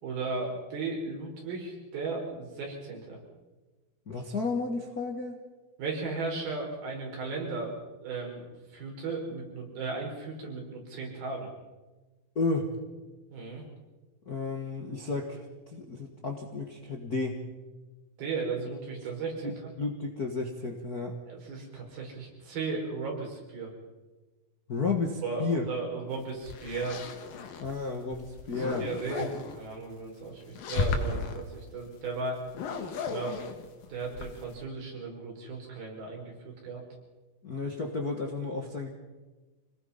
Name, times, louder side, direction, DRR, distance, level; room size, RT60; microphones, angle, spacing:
voice 1, 0.0-3.2 5.8-7.7 8.0-11.5 13.3-13.6 18.2-19.7 21.3-23.7 25.2-27.0 28.5-32.4 33.1-33.5 33.8-36.8, right 4 dB, 85° right, 0 dB, 6.7 m, -36 dB
voice 2, 4.1-5.4 12.3-12.7 14.3-15.4 15.7-17.5 19.4-19.5 19.8-21.2 24.7-25.6 27.6-28.9 37.4-38.9, left 3 dB, 45° left, 2 dB, 1.2 m, -32 dB
sound 1, 26.2-27.7 28.1-29.6 30.4-31.4 32.4-34.6, left 4 dB, 75° left, 3.5 m, -34 dB
26.5 x 19.0 x 5.7 m, 1.2 s
omnidirectional pair, 4.2 m